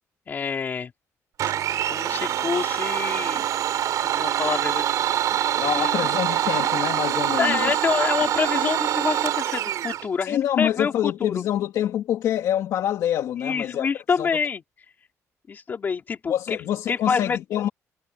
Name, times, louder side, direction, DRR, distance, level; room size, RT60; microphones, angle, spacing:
voice 1, 0.3-0.9 1.9-3.5 4.0-5.0 5.8-5.9 7.4-11.4 13.4-14.6 15.5-16.6 16.9-17.4, left 6 dB, 35° left, 3.3 m, -27 dB
Domestic sounds home sounds, 1.4-10.1, right 11 dB, 75° right, 4.5 m, -25 dB
voice 2, 5.6-7.8 10.2-13.9 14.2-14.3 16.3-17.7, left 11 dB, 80° left, 2.2 m, -26 dB
cardioid pair, 175°, 6 cm